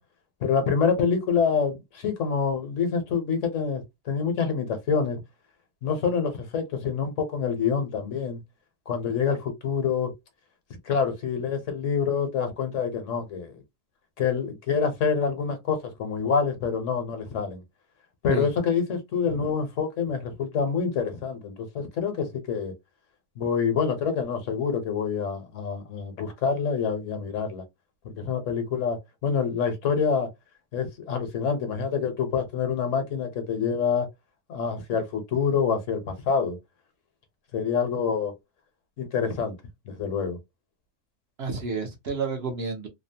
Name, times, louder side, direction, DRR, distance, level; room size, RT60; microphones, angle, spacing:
voice 1, 0.4-5.2 5.8-8.4 8.9-10.1 10.8-13.6 14.2-17.6 18.2-22.7 23.4-27.6 28.0-30.3 30.7-34.1 34.5-36.6 37.5-38.3 39.0-39.5 39.9-40.4, left 6 dB, 70° left, 1.1 m, -26 dB
voice 2, 41.4-42.9, right 4 dB, 55° right, 0.8 m, -30 dB
2.8 x 2.1 x 2.6 m
omnidirectional pair, 1.4 m